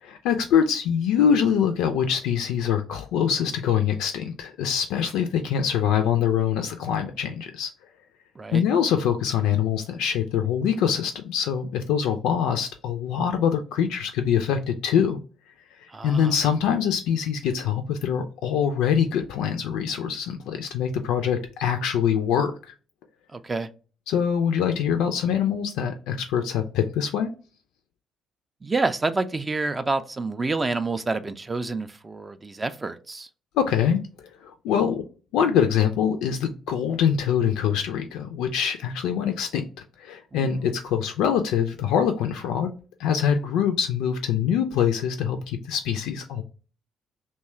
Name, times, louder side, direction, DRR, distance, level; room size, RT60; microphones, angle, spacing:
voice 1, 0.0-7.7 8.5-15.2 15.8-22.7 24.1-27.3 33.6-34.0 34.4-35.0 35.3-39.7 40.0-42.7 43.0-46.4, left 8 dB, 65° left, 0.3 m, -24 dB
voice 2, 15.9-16.3 23.3-23.7 28.6-33.3 40.3-40.5, right 3 dB, 25° right, 0.3 m, -28 dB
2.9 x 2.2 x 4.1 m
figure-of-eight pair, 45°, 0 cm